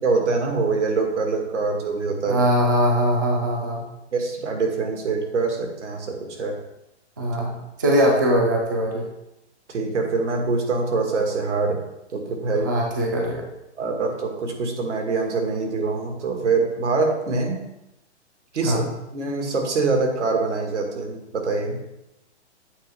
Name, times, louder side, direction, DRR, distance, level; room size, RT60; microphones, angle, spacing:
voice 1, 0.0-2.4 4.1-6.6 9.7-11.8 12.1-12.7 13.8-17.6 18.5-18.8 19.1-21.8, right 4 dB, 85° right, 2 dB, 1.8 m, -24 dB
voice 2, 2.3-3.8 7.2-7.5 7.8-9.1 12.5-13.4 18.6-18.9, equal, 20° right, 0 dB, 0.4 m, -21 dB
8.3 x 4.1 x 3.5 m, 0.88 s
hypercardioid pair, 165°, 35 cm